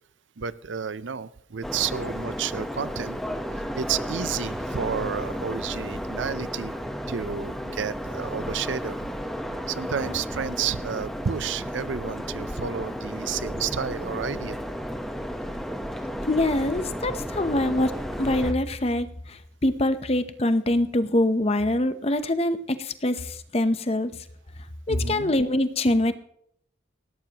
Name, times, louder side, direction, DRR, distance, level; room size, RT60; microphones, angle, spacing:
voice 1, 0.4-3.2 3.7-6.7 7.1-9.1 9.7-14.6 24.9-25.3, right 7 dB, 75° right, 16 dB, 0.6 m, -31 dB
sound 1, 1.6-18.5, equal, ahead, 1.0 m, -33 dB
voice 2, 16.3-24.1 24.9-26.1, left 1 dB, 30° left, 11 dB, 0.7 m, -24 dB
19.0 x 17.0 x 3.0 m, 0.70 s
head